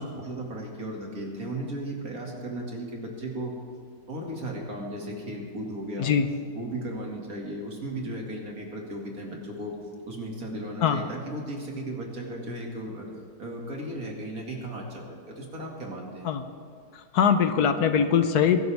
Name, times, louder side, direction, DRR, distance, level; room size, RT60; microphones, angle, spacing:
voice 1, 0.0-3.5 4.1-6.1 6.5-9.7 10.1-13.1 13.4-16.3, right 1 dB, 60° right, -1 dB, 2.8 m, -35 dB
voice 2, 17.1-18.6, left 7 dB, 70° left, 8 dB, 1.4 m, -22 dB
22.0 x 12.5 x 3.5 m, 2.3 s
omnidirectional pair, 1.8 m